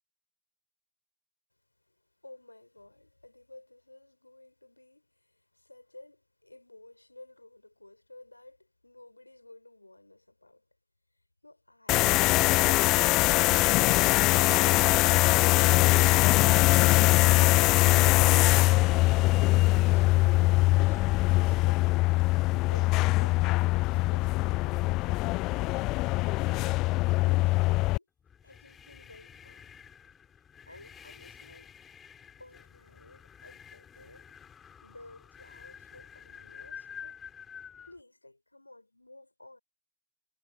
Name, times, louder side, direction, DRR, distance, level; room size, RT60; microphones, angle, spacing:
voice 1, 2.2-10.7 27.2-28.1 28.4-29.7 30.6-31.7 32.4-34.4 34.8-37.2 37.8-39.6, left 2 dB, 90° left, 7.0 m, -54 dB
sound 1, 11.9-28.0, left 20 dB, 65° left, 0.4 m, -22 dB
sound 2, 28.2-38.0, left 7 dB, 45° left, 7.6 m, -50 dB
figure-of-eight pair, 45°, 0 cm